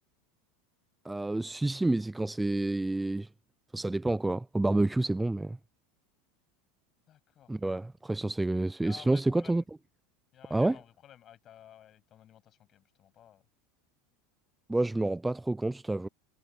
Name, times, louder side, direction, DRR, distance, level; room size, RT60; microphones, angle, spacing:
voice 1, 1.1-3.3 3.7-5.6 7.5-9.6 10.5-10.8 14.7-16.1, right 2 dB, 10° right, 0.3 m, -29 dB
voice 2, 7.1-7.5 8.8-9.6 10.3-13.4, left 11 dB, 40° left, 7.9 m, -54 dB
supercardioid pair, 105°, 0 cm